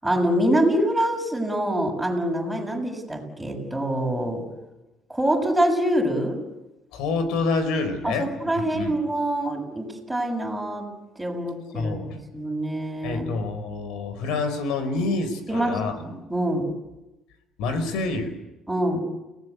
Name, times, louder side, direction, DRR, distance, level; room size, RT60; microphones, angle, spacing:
voice 1, 0.0-4.4 5.1-6.4 8.0-10.9 11.2-12.0 12.3-13.3 15.5-16.7 18.7-19.0, right 1 dB, 5° right, 0 dB, 7.0 m, -25 dB
voice 2, 6.9-8.9 11.7-12.2 13.0-16.0 17.6-18.3, left 3 dB, 85° left, 10 dB, 4.8 m, -27 dB
29.5 x 18.5 x 8.4 m, 0.99 s
cardioid pair, 125°, 0 cm